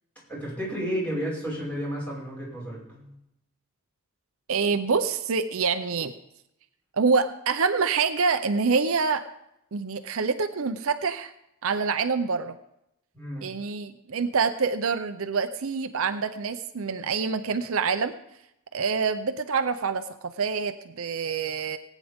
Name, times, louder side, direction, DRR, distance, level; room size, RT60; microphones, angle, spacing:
voice 1, 0.3-3.1 13.1-13.5, equal, 5° left, -6 dB, 5.3 m, -32 dB
voice 2, 4.5-6.1 6.9-9.3 9.7-11.3 11.6-12.6 13.4-18.1 18.7-21.8, right 5 dB, 70° right, 9 dB, 0.6 m, -26 dB
19.5 x 9.2 x 3.6 m, 0.82 s
head